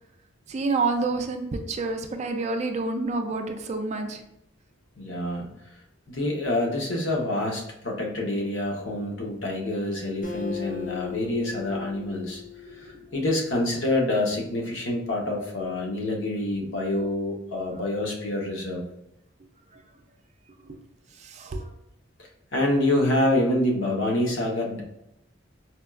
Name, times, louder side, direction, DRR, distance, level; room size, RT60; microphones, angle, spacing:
voice 1, 0.5-4.2 12.7-12.8 19.7-19.8 20.6-20.8 21.2-21.7, right 3 dB, 35° right, 5 dB, 0.3 m, -28 dB
voice 2, 5.0-5.5 6.1-12.4 12.8-18.9 22.5-24.8, left 1 dB, 70° left, 0 dB, 0.8 m, -26 dB
Acoustic guitar, 10.2-13.7, left 8 dB, 40° left, 0.5 m, -38 dB
4.2 x 2.3 x 2.3 m, 0.82 s
head